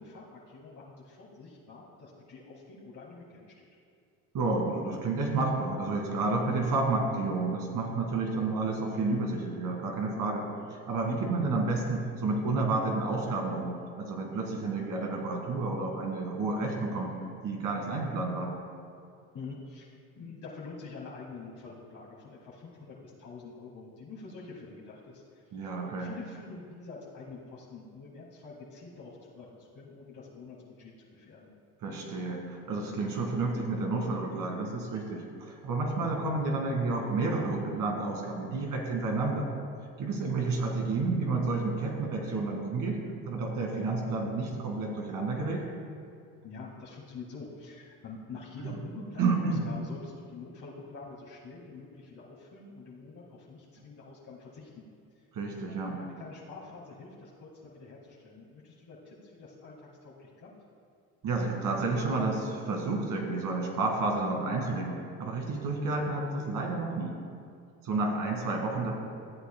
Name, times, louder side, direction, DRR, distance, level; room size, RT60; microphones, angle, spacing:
voice 1, 0.0-3.7 19.3-25.7 26.0-31.5 46.4-54.8 55.1-55.2 55.7-60.5, left 4 dB, 50° left, -5 dB, 1.9 m, -46 dB
voice 2, 4.3-17.1 17.4-18.5 25.5-26.1 31.8-39.5 40.0-43.0 43.2-45.7 48.6-48.8 49.2-49.7 55.3-56.0 61.2-67.1 67.8-68.9, right 3 dB, 60° right, 1 dB, 2.1 m, -30 dB
14.5 x 7.9 x 2.2 m, 2.3 s
supercardioid pair, 80°, 38 cm